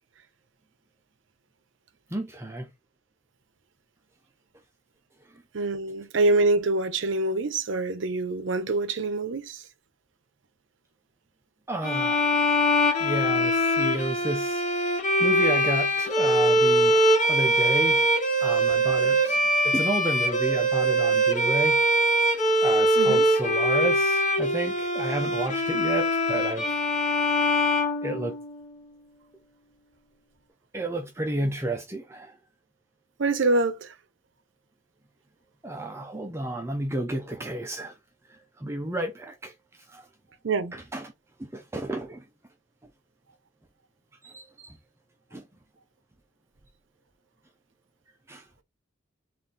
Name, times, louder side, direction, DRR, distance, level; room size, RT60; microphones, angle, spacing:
voice 1, 2.1-2.7 11.7-12.4 13.0-14.7 15.2-18.1 18.4-21.8 22.6-26.8 28.0-28.3 30.7-32.4 35.6-37.9 38.3-39.5 39.9-40.1 40.7-41.1 41.4-42.2 44.2-44.8 45.3-45.4 48.3-48.4, right 2 dB, 15° right, 0.4 m, -31 dB
voice 2, 5.5-9.7 23.0-23.3 33.2-33.9 40.4-40.8, right 2 dB, 70° right, 0.6 m, -25 dB
sound 1, 11.8-28.7, equal, 40° left, 0.8 m, -23 dB
3.7 x 2.5 x 3.9 m
head